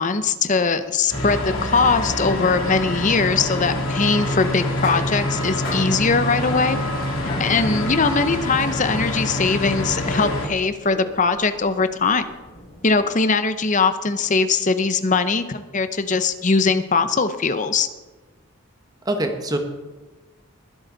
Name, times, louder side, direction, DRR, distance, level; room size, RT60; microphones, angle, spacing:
voice 1, 0.0-6.8 7.4-12.2 12.8-17.9, left 4 dB, 35° left, 11 dB, 0.7 m, -21 dB
sound 1, 1.1-10.5, left 1 dB, 75° left, 2.7 m, -26 dB
sound 2, 4.2-13.1, left 1 dB, 55° left, 5.0 m, -37 dB
voice 2, 7.6-8.0 19.0-19.6, right 1 dB, 20° right, 4 dB, 1.3 m, -25 dB
21.0 x 7.9 x 4.0 m, 1.2 s
head